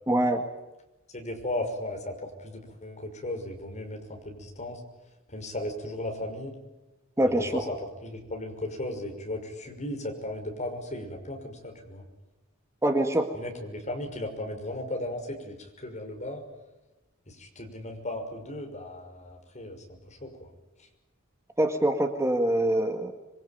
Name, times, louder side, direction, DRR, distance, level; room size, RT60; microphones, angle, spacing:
voice 1, 0.1-0.4 7.2-7.7 12.8-13.3 21.6-23.1, right 1 dB, 15° right, 5 dB, 1.8 m, -24 dB
voice 2, 1.1-4.8 5.3-6.6 7.2-7.8 8.0-12.0 13.3-16.4 17.3-20.5, left 1 dB, 35° left, 4 dB, 5.9 m, -36 dB
26.5 x 23.5 x 9.4 m, 1.0 s
head